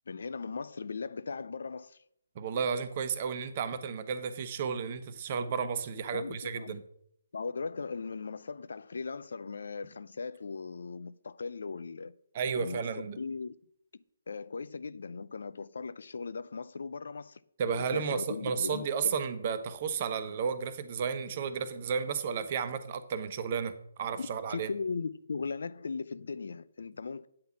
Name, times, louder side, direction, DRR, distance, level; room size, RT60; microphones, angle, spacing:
voice 1, 0.1-2.0 6.1-6.7 7.3-12.1 12.5-13.6 13.9-17.4 17.7-19.2 24.2-27.3, left 4 dB, 60° left, 0.5 m, -38 dB
voice 2, 2.3-6.8 12.3-13.2 17.6-23.7 24.0-24.7, right 6 dB, 40° right, 1.0 m, -33 dB
8.8 x 5.7 x 7.5 m
figure-of-eight pair, 140°, 0 cm